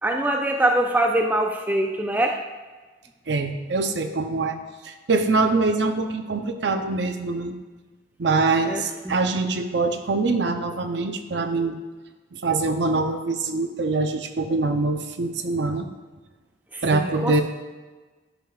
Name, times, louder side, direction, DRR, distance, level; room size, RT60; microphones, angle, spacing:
voice 1, 0.0-2.4 8.7-9.1 16.7-17.4, right 1 dB, 10° right, 2 dB, 0.4 m, -24 dB
voice 2, 3.3-4.6 4.8-7.6 8.2-11.8 12.3-15.9 16.8-17.4, right 3 dB, 60° right, 7 dB, 0.6 m, -24 dB
11.5 x 6.4 x 2.3 m, 1.3 s
head